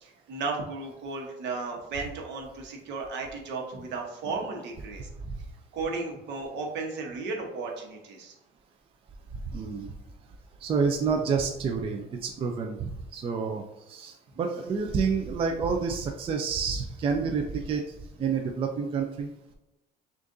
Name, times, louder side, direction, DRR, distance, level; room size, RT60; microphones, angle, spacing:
voice 1, 0.0-5.1 5.7-8.3, right 3 dB, 70° right, 1 dB, 1.0 m, -34 dB
voice 2, 9.5-9.9 10.6-17.9 18.2-19.5, right 5 dB, 30° right, 3 dB, 0.4 m, -29 dB
6.3 x 2.5 x 2.6 m, 0.93 s
cardioid pair, 140°, 19 cm